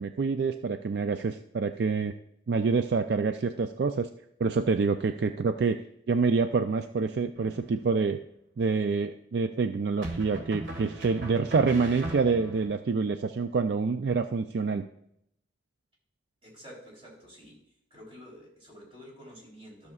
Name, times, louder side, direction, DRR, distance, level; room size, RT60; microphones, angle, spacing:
voice 1, 0.0-2.1 2.5-4.1 4.4-5.8 6.1-8.2 8.6-14.9, right 4 dB, 60° right, 8 dB, 0.4 m, -27 dB
sound 1, 7.4-8.0 10.0-12.7, right 1 dB, 75° right, 1.6 m, -38 dB
voice 2, 16.4-19.9, equal, 30° right, -3 dB, 3.6 m, -49 dB
13.5 x 6.8 x 2.4 m, 0.74 s
head